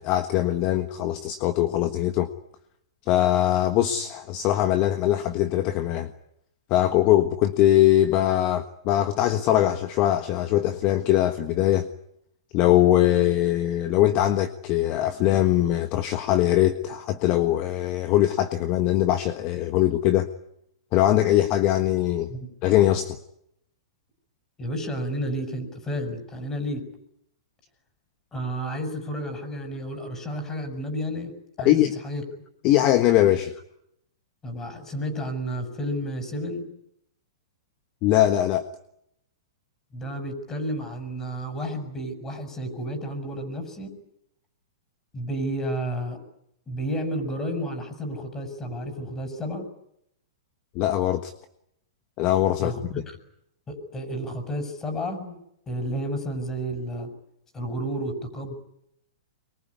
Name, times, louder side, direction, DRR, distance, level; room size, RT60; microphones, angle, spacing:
voice 1, 0.0-2.3 3.1-6.1 6.7-11.9 12.5-20.3 20.9-22.3 22.6-23.2 31.6-31.9 32.6-33.5 38.0-38.6 50.7-51.3 52.2-52.7, left 13 dB, 40° left, 9 dB, 1.4 m, -21 dB
voice 2, 24.6-26.9 28.3-32.2 34.4-36.7 39.9-43.9 45.1-46.2 46.7-49.7 52.6-53.0 53.7-55.4 55.7-57.1 57.5-58.5, equal, 20° left, 6 dB, 6.5 m, -31 dB
25.0 x 23.0 x 9.7 m, 0.78 s
hypercardioid pair, 130°, 2 cm